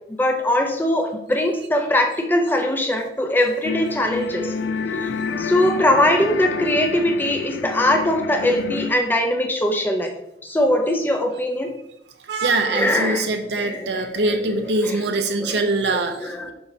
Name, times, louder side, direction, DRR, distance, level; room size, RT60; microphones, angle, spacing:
voice 1, 0.2-4.5 5.0-5.1 5.4-10.1 10.4-11.7 12.6-14.6 14.8-15.0 15.4-16.5, left 1 dB, 10° left, 4 dB, 0.6 m, -21 dB
sound 1, 3.6-8.9, left 4 dB, 80° left, 0.4 m, -28 dB
voice 2, 12.3-16.5, right 2 dB, 75° right, 5 dB, 0.7 m, -23 dB
6.8 x 5.5 x 2.7 m, 0.80 s
head